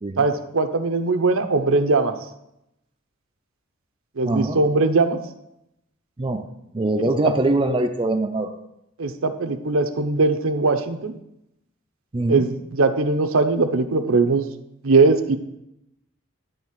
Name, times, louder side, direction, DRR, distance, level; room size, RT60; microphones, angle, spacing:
voice 1, 0.2-2.1 4.2-5.2 9.0-11.2 12.3-14.5 14.8-15.4, right 3 dB, 70° right, 8 dB, 0.8 m, -20 dB
voice 2, 4.2-4.6 6.2-6.5 6.7-8.5 12.1-12.5, right 2 dB, 25° right, 4 dB, 0.5 m, -23 dB
10.5 x 3.5 x 7.3 m, 0.81 s
head